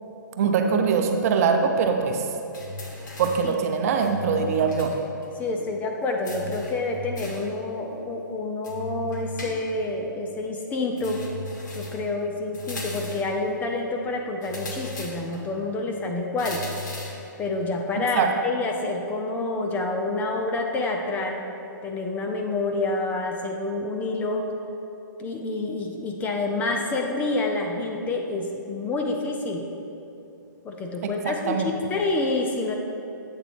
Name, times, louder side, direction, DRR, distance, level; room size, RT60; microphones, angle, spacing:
voice 1, 0.4-2.2 3.2-4.9 18.1-18.3 31.3-31.7, right 6 dB, 45° right, 5 dB, 0.7 m, -22 dB
sound 1, 2.5-3.5 4.0-5.0 5.2-5.3 6.2-7.5 8.6-9.9 11.0-12.1 12.5-13.3 14.4-15.4 16.4-17.3, left 2 dB, 65° left, 1.8 m, -36 dB
voice 2, 5.4-11.2 11.7-16.6 17.4-21.5 21.8-24.5 25.2-29.7 30.6-31.6 31.9-32.7, left 2 dB, 15° left, 2 dB, 0.4 m, -28 dB
8.1 x 4.0 x 6.0 m, 2.8 s
hypercardioid pair, 145°, 11 cm